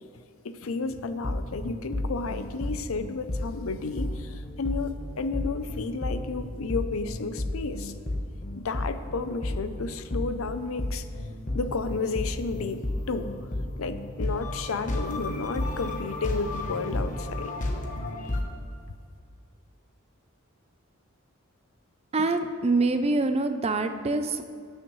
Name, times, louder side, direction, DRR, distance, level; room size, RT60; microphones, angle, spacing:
voice 1, 0.4-7.9 8.5-11.1 11.5-13.3 13.8-17.5, left 4 dB, 75° left, 11 dB, 0.6 m, -32 dB
sound 1, 1.2-18.4, left 1 dB, 40° left, 1.1 m, -32 dB
voice 2, 22.1-24.4, right 3 dB, 30° right, 8 dB, 0.5 m, -25 dB
18.0 x 6.5 x 3.2 m, 2.3 s
head